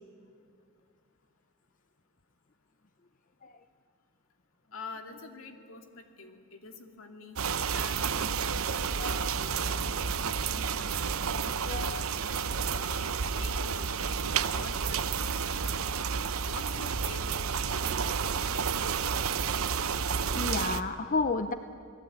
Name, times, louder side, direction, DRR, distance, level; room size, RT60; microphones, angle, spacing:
voice 1, 4.7-12.2 12.7-16.0 16.4-18.4, left 3 dB, 70° left, 5 dB, 2.6 m, -47 dB
sound 1, 7.4-20.8, right 6 dB, 75° right, 0.9 m, -30 dB
voice 2, 9.0-9.3 11.7-12.0 20.3-21.5, left 3 dB, 40° left, 9 dB, 0.8 m, -31 dB
28.5 x 19.5 x 9.4 m, 2.3 s
head